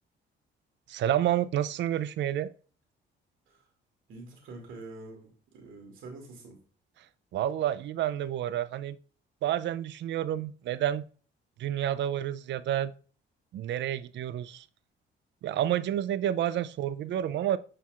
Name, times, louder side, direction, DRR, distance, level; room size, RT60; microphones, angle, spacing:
voice 1, 0.9-2.5 7.3-9.0 9.4-11.0 11.6-12.9 13.5-14.7 15.4-17.6, right 11 dB, 65° right, 0.4 m, -29 dB
voice 2, 4.1-6.6, right 3 dB, 85° right, 2.3 m, -46 dB
9.6 x 4.6 x 2.4 m
cardioid pair, 90°, 20 cm